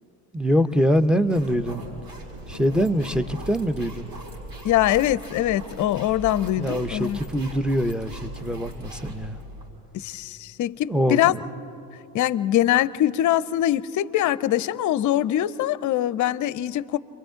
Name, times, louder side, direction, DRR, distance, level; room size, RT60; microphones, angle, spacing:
voice 1, 0.3-1.8 2.5-4.1 6.6-9.4 10.9-11.4, equal, ahead, 0.7 m, -24 dB
sound 1, 0.9-9.7, right 1 dB, 65° right, 6.6 m, -39 dB
voice 2, 4.6-7.2 9.9-11.3 12.1-17.0, left 13 dB, 40° left, 0.7 m, -23 dB
29.5 x 23.5 x 3.8 m
hypercardioid pair, 75°, 48 cm